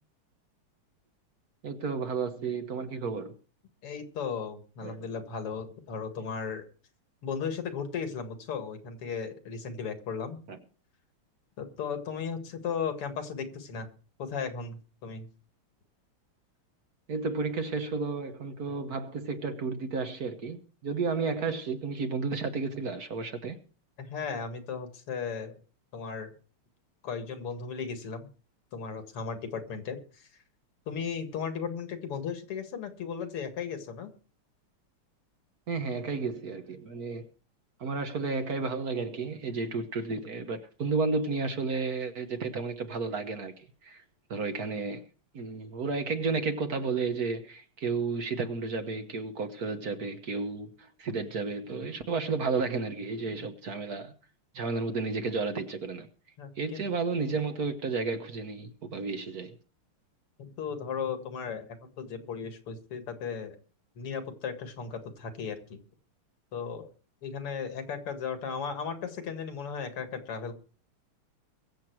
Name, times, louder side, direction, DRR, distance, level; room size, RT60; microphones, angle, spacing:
voice 1, 1.6-3.3 4.8-5.1 10.5-10.6 17.1-23.6 35.7-37.3 37.8-44.0 44.3-45.1 45.3-54.1 54.5-56.1 56.6-59.6, right 4 dB, 50° right, 1.4 m, -32 dB
voice 2, 3.8-6.6 7.2-10.4 11.6-13.9 14.2-15.3 24.0-25.6 25.9-26.3 27.0-28.3 28.7-30.3 30.9-34.1 56.4-56.9 60.4-61.7 62.0-63.6 64.0-65.8 66.5-66.9 67.2-70.5, left 6 dB, 85° left, 2.8 m, -36 dB
22.5 x 7.6 x 4.7 m
omnidirectional pair, 2.4 m